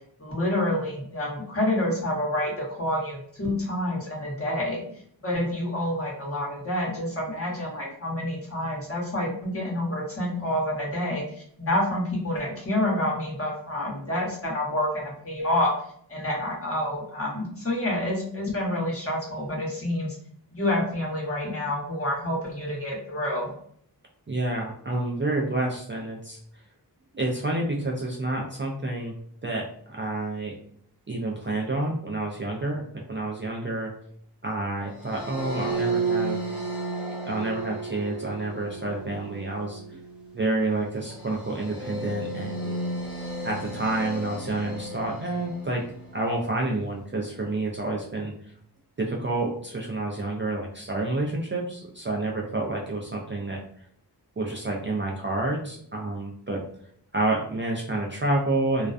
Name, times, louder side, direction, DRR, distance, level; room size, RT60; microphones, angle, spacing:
voice 1, 0.2-4.8 5.2-15.7 16.1-20.1 20.5-23.5, left 1 dB, 35° left, -4 dB, 1.1 m, -28 dB
voice 2, 24.3-26.4 27.1-29.1 29.4-30.5 31.1-32.8 33.1-33.9 34.4-36.4 37.2-40.0 40.3-42.8 43.4-45.8 46.1-48.3 49.0-53.6 54.4-56.6 57.1-58.9, right 2 dB, 30° right, -2 dB, 0.4 m, -29 dB
sound 1, 34.9-46.3, right 3 dB, ahead, 0.8 m, -33 dB
2.4 x 2.2 x 2.4 m, 0.64 s
wide cardioid pair, 45°, 40 cm